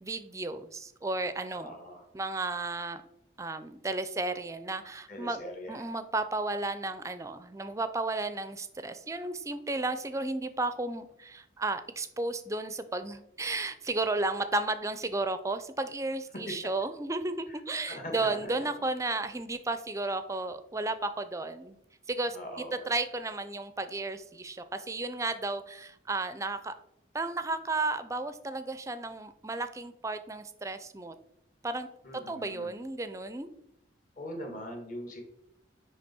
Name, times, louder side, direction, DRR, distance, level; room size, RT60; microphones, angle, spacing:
voice 1, 0.0-1.7 2.1-3.0 3.4-5.4 5.7-21.8 22.1-22.4 22.9-26.7 27.1-31.2 31.6-31.9 32.3-33.5, right 2 dB, 15° right, 11 dB, 0.5 m, -33 dB
voice 2, 1.5-2.0 5.1-5.9 16.5-16.6 17.5-18.5 22.3-22.9 32.0-32.7 34.2-35.2, equal, 45° left, 2 dB, 1.6 m, -42 dB
9.9 x 3.3 x 4.3 m, 0.80 s
head